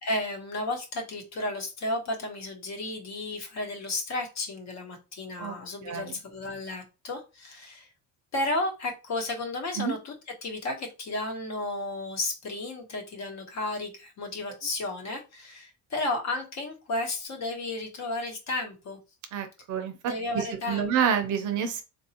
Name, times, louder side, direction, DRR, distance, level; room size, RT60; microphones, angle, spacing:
voice 1, 0.0-7.9 8.3-10.1 10.4-19.0 20.1-20.9, left 2 dB, 45° left, 3 dB, 1.1 m, -33 dB
voice 2, 5.8-6.2 9.8-9.9 19.3-21.8, right 8 dB, 50° right, 7 dB, 0.7 m, -28 dB
4.0 x 2.6 x 2.8 m, 0.28 s
cardioid pair, 165°, 38 cm